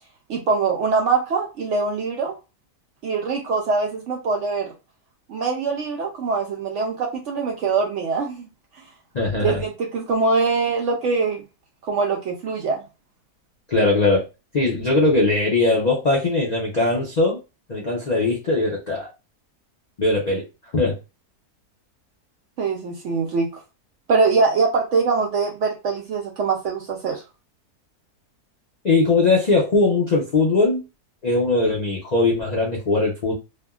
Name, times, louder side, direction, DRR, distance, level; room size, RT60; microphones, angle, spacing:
voice 1, 0.3-2.4 3.0-4.7 5.3-8.5 9.4-11.4 11.8-12.8 22.6-23.6 24.1-27.2, right 4 dB, 70° right, 0.7 m, -23 dB
voice 2, 9.1-9.6 13.7-14.3 14.5-17.4 17.7-19.1 20.0-20.4 20.7-21.0 28.8-30.8 31.2-33.3, left 3 dB, 75° left, 0.4 m, -20 dB
3.3 x 2.1 x 2.3 m
omnidirectional pair, 1.7 m